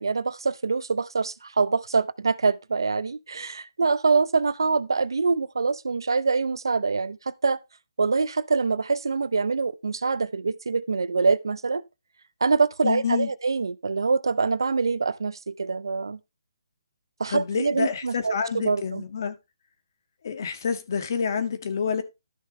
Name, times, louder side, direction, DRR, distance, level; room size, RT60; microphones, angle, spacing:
voice 1, 0.0-7.6 8.0-11.8 12.4-16.2 17.2-19.0, right 4 dB, 75° right, 0.7 m, -25 dB
voice 2, 12.8-13.3 17.3-19.4 20.2-22.0, left 6 dB, 55° left, 1.8 m, -28 dB
13.0 x 6.6 x 3.2 m
figure-of-eight pair, 145°, 2 cm